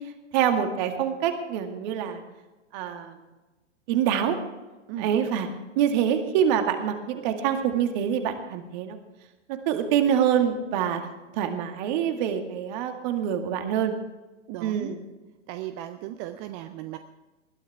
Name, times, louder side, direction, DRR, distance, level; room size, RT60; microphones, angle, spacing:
voice 1, 0.3-2.2 2.7-3.2 3.9-4.4 5.0-5.5 5.8-9.0 9.7-11.0 11.3-13.9 14.6-15.0, right 9 dB, 40° right, 6 dB, 2.0 m, -25 dB
voice 2, 14.5-14.9 15.5-17.0, right 13 dB, 20° right, 9 dB, 0.5 m, -36 dB
20.5 x 12.0 x 3.5 m, 1.1 s
figure-of-eight pair, 110°, 36 cm